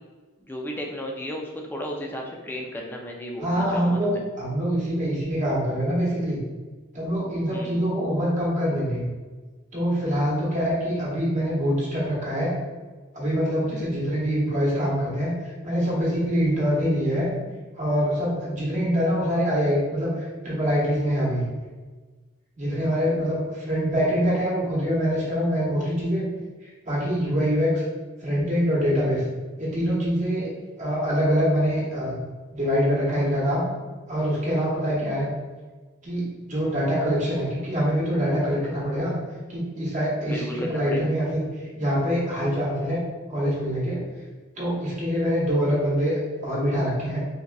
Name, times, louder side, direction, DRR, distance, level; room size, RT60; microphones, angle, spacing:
voice 1, 0.5-4.2 7.5-7.7 40.3-41.1, equal, 10° left, 0 dB, 0.3 m, -34 dB
voice 2, 3.4-4.1 4.4-6.4 6.9-9.1 9.7-12.5 13.1-17.3 17.7-21.4 22.6-26.2 26.6-27.8 28.2-29.2 29.6-30.5 30.8-32.2 32.5-33.7 34.1-35.3 36.0-39.2 39.5-43.0 43.3-44.0 44.6-47.2, equal, 35° right, -7 dB, 1.1 m, -24 dB
4.0 x 2.4 x 2.2 m, 1.3 s
head